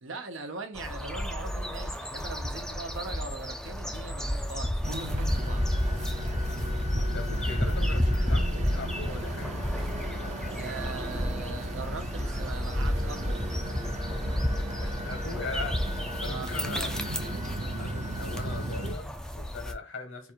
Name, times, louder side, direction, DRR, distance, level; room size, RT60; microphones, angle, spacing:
voice 1, 0.0-5.7 10.5-13.5 16.2-16.9, right 3 dB, 80° right, 0.9 m, -41 dB
sound 1, 0.8-19.7, equal, 5° left, 0.4 m, -31 dB
sound 2, 4.8-18.9, right 1 dB, 40° right, 0.7 m, -37 dB
voice 2, 6.9-9.6 14.7-16.9 17.5-20.3, left 4 dB, 75° left, 1.2 m, -40 dB
4.0 x 2.5 x 4.4 m
head